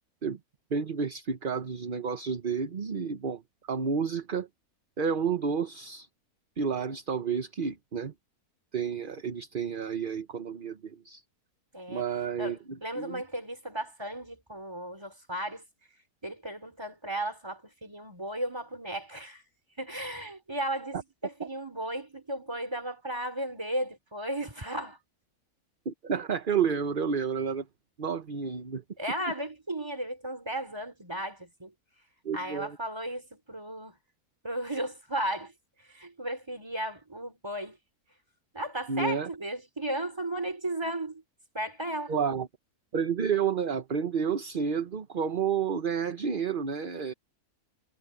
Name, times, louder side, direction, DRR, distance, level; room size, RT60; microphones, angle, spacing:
voice 1, 0.7-3.4 3.7-4.5 5.0-6.1 6.6-8.1 8.7-11.2 11.9-12.6 13.0-13.2 20.9-21.0 25.8-27.7 28.0-28.8 32.2-32.8 38.9-39.3 42.1-42.5 42.9-47.1, right 6 dB, 40° right, 1.0 m, -30 dB
voice 2, 11.7-12.1 12.4-15.6 16.2-19.4 19.8-21.0 21.2-25.0 29.0-31.7 32.3-34.0 34.4-35.5 35.8-37.8 38.5-41.2 41.5-42.1, right 1 dB, 15° right, 3.6 m, -35 dB
omnidirectional pair, 1.6 m